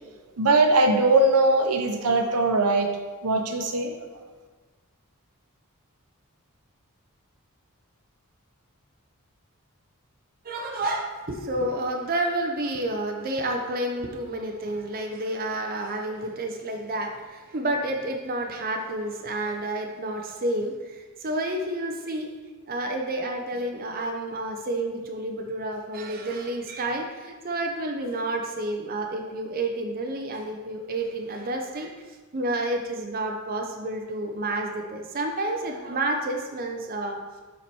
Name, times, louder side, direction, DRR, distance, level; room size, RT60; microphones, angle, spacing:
voice 1, 0.4-2.9 3.2-4.1, right 2 dB, 85° right, 5 dB, 0.8 m, -21 dB
voice 2, 10.4-22.3 22.7-31.9 32.3-37.2, right 1 dB, 40° right, 2 dB, 0.6 m, -30 dB
7.1 x 4.6 x 4.3 m, 1.3 s
head